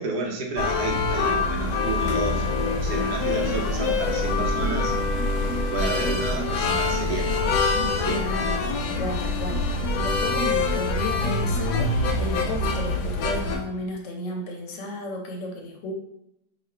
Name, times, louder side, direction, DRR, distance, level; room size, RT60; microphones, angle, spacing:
voice 1, 0.0-2.5 2.8-4.9 5.7-7.7 8.0-8.2, right 4 dB, 80° right, 0 dB, 1.3 m, -31 dB
sound 1, 0.6-13.6, left 3 dB, 80° left, 1.1 m, -25 dB
voice 2, 8.1-15.9, left 1 dB, 60° left, 2 dB, 0.9 m, -33 dB
3.1 x 2.3 x 4.3 m, 0.81 s
omnidirectional pair, 1.7 m